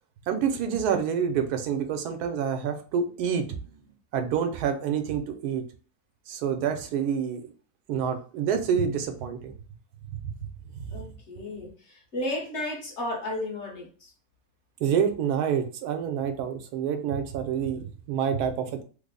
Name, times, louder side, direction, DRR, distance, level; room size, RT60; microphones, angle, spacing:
voice 1, 0.3-3.5 4.1-5.6 6.3-7.4 7.9-9.5 10.2-10.3 14.8-18.8, right 7 dB, 85° right, 1.1 m, -27 dB
voice 2, 10.9-14.1, left 1 dB, 50° left, 1.2 m, -33 dB
3.3 x 2.0 x 3.7 m
omnidirectional pair, 1.7 m